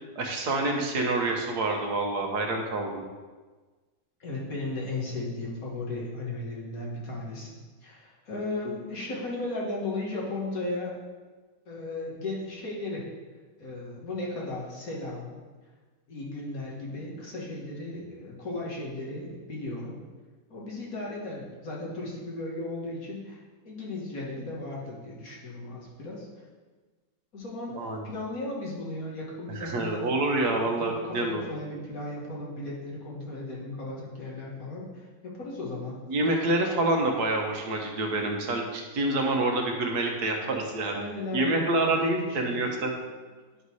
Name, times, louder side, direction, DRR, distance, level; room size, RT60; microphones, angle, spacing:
voice 1, 0.2-3.0 27.7-28.1 29.5-31.5 36.1-41.0 41.3-42.9, right 2 dB, 85° right, 2 dB, 1.6 m, -27 dB
voice 2, 4.2-7.5 7.8-11.0 11.7-13.1 13.6-15.4 16.1-20.0 20.5-26.3 27.3-30.1 30.8-36.0 40.9-42.8, left 2 dB, 65° left, -4 dB, 2.3 m, -36 dB
11.0 x 4.1 x 4.7 m, 1.4 s
omnidirectional pair, 1.6 m